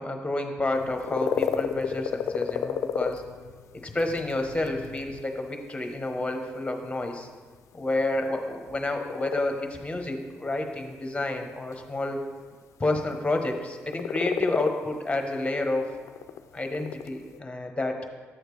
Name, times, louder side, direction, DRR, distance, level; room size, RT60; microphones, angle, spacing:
voice 1, 0.0-3.2 3.8-7.3 7.7-12.2 12.8-16.0 16.5-18.0, left 2 dB, 20° left, 4 dB, 1.0 m, -29 dB
sound 1, 0.7-17.4, left 8 dB, 75° left, 0.3 m, -34 dB
7.7 x 6.4 x 3.2 m, 1.5 s
supercardioid pair, 50°, 5 cm